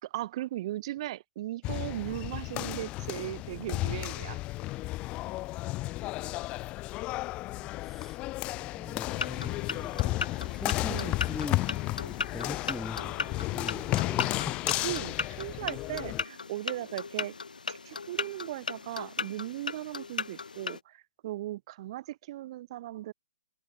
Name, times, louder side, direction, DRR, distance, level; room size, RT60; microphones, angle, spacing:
voice 1, 0.0-4.4 10.9-11.1 14.8-17.3 17.7-23.1, right 15 dB, 40° right, 2.8 m, -37 dB
sound 1, 1.6-16.2, left 18 dB, 25° left, 1.1 m, -33 dB
voice 2, 7.6-8.2 8.6-11.7 12.1-14.8 15.4-15.5, left 2 dB, 5° left, 1.9 m, -42 dB
sound 2, 9.1-20.8, left 4 dB, 75° left, 1.7 m, -37 dB
figure-of-eight pair, 130°, 4 cm